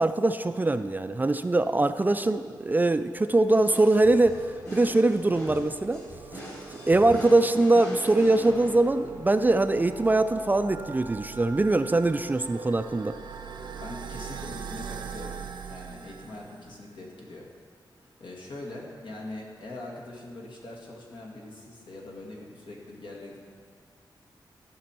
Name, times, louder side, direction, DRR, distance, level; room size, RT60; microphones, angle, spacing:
voice 1, 0.0-4.4 4.7-6.0 6.3-6.4 6.7-13.2, right 2 dB, 20° right, 10 dB, 0.3 m, -22 dB
sound 1, 2.9-16.9, right 6 dB, 85° right, 0.7 m, -42 dB
sound 2, 3.5-9.3, equal, 40° left, 2.9 m, -42 dB
voice 2, 13.8-17.5 18.0-23.5, left 2 dB, 75° left, -2 dB, 2.0 m, -42 dB
14.0 x 6.1 x 4.4 m, 2.1 s
wide cardioid pair, 90°, 8 cm